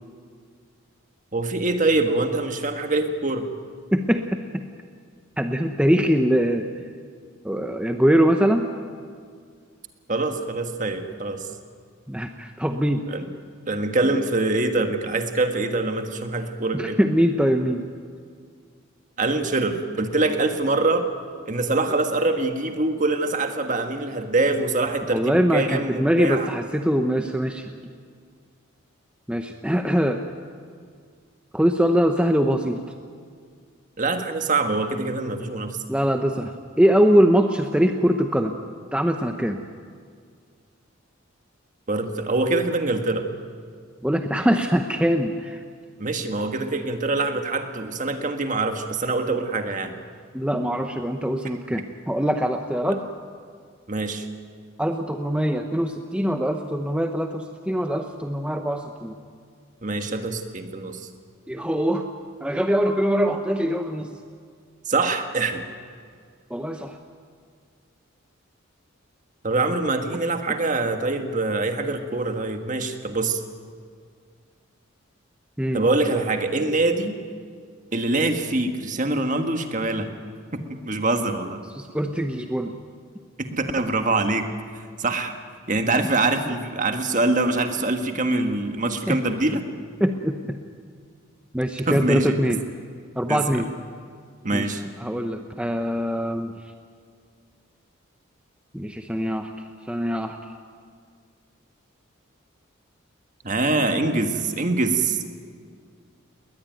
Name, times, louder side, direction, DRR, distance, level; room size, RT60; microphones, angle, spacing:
voice 1, 1.3-3.5 10.1-11.5 13.1-13.3 13.7-17.0 19.2-21.1 21.5-26.5 34.0-35.8 41.9-43.3 46.0-49.9 52.9-53.0 53.9-54.3 59.8-61.1 64.9-65.6 69.4-73.4 75.7-77.2 77.9-80.1 80.5-81.6 83.4-84.5 85.0-85.3 85.7-89.7 91.9-92.6 93.3-93.6 94.4-94.8 103.4-105.2, right 2 dB, 40° right, 6 dB, 1.6 m, -24 dB
voice 2, 3.9-4.4 5.4-6.7 7.4-8.7 12.1-13.1 16.7-17.8 25.1-27.8 29.3-30.2 31.5-32.8 35.9-38.6 38.9-39.6 44.0-45.6 50.3-53.0 54.8-59.1 61.5-62.1 62.4-64.1 66.5-67.0 75.6-75.8 81.8-82.7 89.1-89.2 90.0-90.6 91.5-92.6 93.2-93.7 94.5-94.7 95.0-96.5 98.7-99.5 99.9-100.4, equal, 5° right, 5 dB, 0.8 m, -22 dB
20.5 x 20.0 x 9.2 m, 2.1 s
head